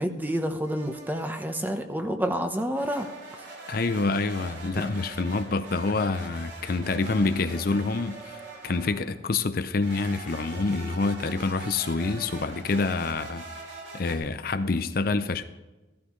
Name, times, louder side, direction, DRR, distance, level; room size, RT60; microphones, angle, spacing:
voice 1, 0.0-3.4 4.8-4.9, equal, 10° right, 0.9 m, -29 dB
sound 1, 0.6-1.7 2.7-9.1 9.8-14.1, right 3 dB, 75° right, 3.4 m, -43 dB
voice 2, 3.7-13.4 13.9-15.4, left 3 dB, 50° left, 0.5 m, -27 dB
15.5 x 13.0 x 3.2 m
head